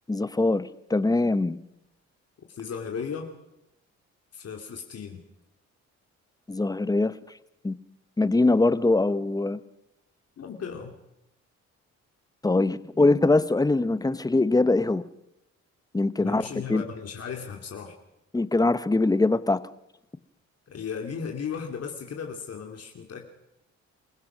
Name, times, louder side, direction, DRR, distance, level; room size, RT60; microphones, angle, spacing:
voice 1, 0.1-1.6 6.5-7.1 7.6-7.7 8.2-9.6 12.4-15.0 15.9-16.8 18.3-19.6, left 2 dB, 10° left, 15 dB, 0.9 m, -22 dB
voice 2, 2.5-3.3 4.3-5.2 10.4-10.9 16.2-17.9 20.7-23.3, left 6 dB, 55° left, 3 dB, 2.6 m, -36 dB
28.0 x 16.0 x 6.1 m, 0.86 s
cardioid pair, 90°, 30 cm